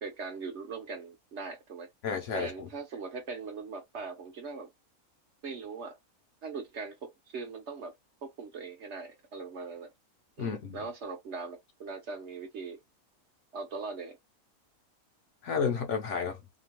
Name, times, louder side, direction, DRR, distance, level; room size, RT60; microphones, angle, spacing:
voice 1, 0.0-1.9 2.3-4.7 5.4-6.0 6.4-7.9 8.2-9.9 10.4-12.8 13.5-14.2, right 4 dB, 55° right, 1.0 m, -40 dB
voice 2, 2.0-2.7 10.4-10.8 15.4-16.4, left 6 dB, 60° left, 0.9 m, -31 dB
2.9 x 2.2 x 2.9 m
omnidirectional pair, 1.5 m